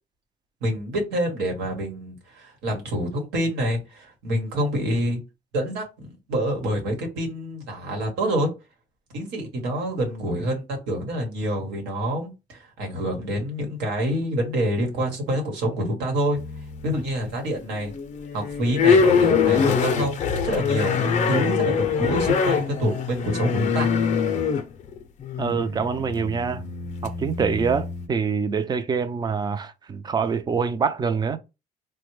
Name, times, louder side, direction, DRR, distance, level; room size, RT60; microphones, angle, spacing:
voice 1, 0.6-5.2 5.5-8.5 9.1-16.4 16.8-17.9 18.3-23.9, equal, 85° right, 1.2 m, -27 dB
sound 1, 16.3-17.1 17.5-28.1, left 6 dB, 45° left, 0.5 m, -24 dB
voice 2, 25.4-26.7 27.0-31.4, right 6 dB, 25° right, 0.4 m, -25 dB
3.3 x 2.2 x 3.1 m
cardioid pair, 110°, 17 cm